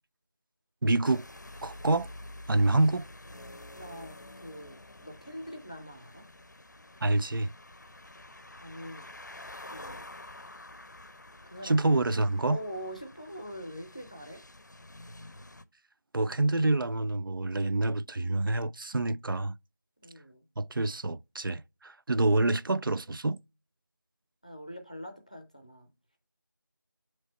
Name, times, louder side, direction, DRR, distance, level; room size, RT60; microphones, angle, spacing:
voice 1, 0.8-1.3 1.6-2.1 2.5-3.1 7.0-7.5 11.6-12.6 16.1-19.6 20.6-23.4, right 2 dB, 80° right, 0.4 m, -27 dB
sound 1, 1.0-15.6, left 1 dB, 60° left, 0.5 m, -48 dB
voice 2, 3.7-6.3 8.6-9.1 9.6-10.1 11.4-11.9 12.5-14.4 20.0-20.4 24.4-25.9, equal, 20° left, 0.6 m, -43 dB
7.4 x 3.2 x 4.1 m
figure-of-eight pair, 180°, 11 cm